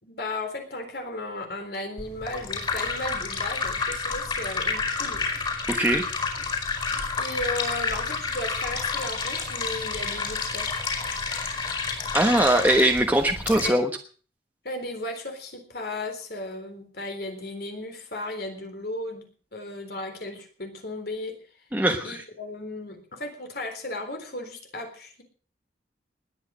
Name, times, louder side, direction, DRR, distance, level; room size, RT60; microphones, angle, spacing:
voice 1, 0.0-5.3 7.2-10.7 13.5-13.8 14.6-21.4 22.0-25.2, left 2 dB, 60° left, 5 dB, 3.9 m, -35 dB
sound 1, 2.0-13.7, left 4 dB, 30° left, 4.9 m, -29 dB
voice 2, 5.7-6.0 12.1-13.9 21.7-22.2, right 1 dB, 10° right, 3 dB, 1.2 m, -21 dB
20.0 x 9.1 x 6.4 m, 0.42 s
head